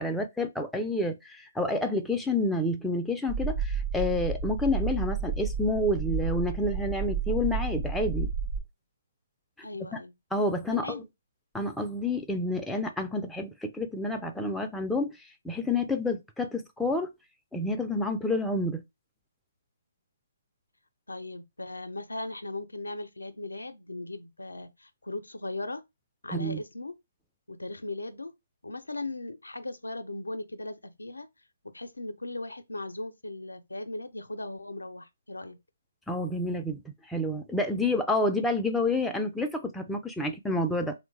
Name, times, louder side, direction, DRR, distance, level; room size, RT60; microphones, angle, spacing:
voice 1, 0.0-8.3 9.6-9.7 9.9-10.0 10.3-11.0 11.5-15.2 15.4-17.1 17.5-18.8 26.3-26.6 36.1-40.9, left 2 dB, 5° left, 0.3 m, -29 dB
sound 1, 3.3-8.6, right 5 dB, 45° right, 0.6 m, -31 dB
voice 2, 9.6-10.1 10.7-11.1 21.1-25.8 26.2-26.9 27.5-28.3 28.6-31.3 31.7-35.6, left 2 dB, 80° left, 0.4 m, -38 dB
3.1 x 2.1 x 3.1 m
figure-of-eight pair, 135°, 0 cm